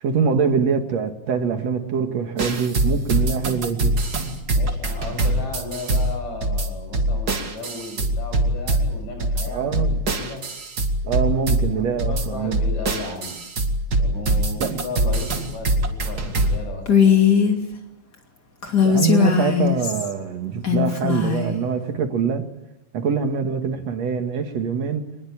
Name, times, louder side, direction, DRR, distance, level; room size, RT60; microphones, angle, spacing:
voice 1, 0.0-4.0 9.5-10.0 11.0-12.6 14.6-14.7 18.8-22.5 22.9-25.1, right 6 dB, 60° right, 3.1 m, -24 dB
sound 1, 2.4-16.6, right 1 dB, 35° right, 2.4 m, -23 dB
voice 2, 4.5-10.4 11.7-13.4 14.0-17.5, left 3 dB, 65° left, 7.8 m, -35 dB
Female speech woman speaking, 16.9-17.6 18.6-20.1 20.6-21.5, left 7 dB, 35° left, 3.2 m, -18 dB
25.0 x 21.0 x 8.9 m
omnidirectional pair, 3.4 m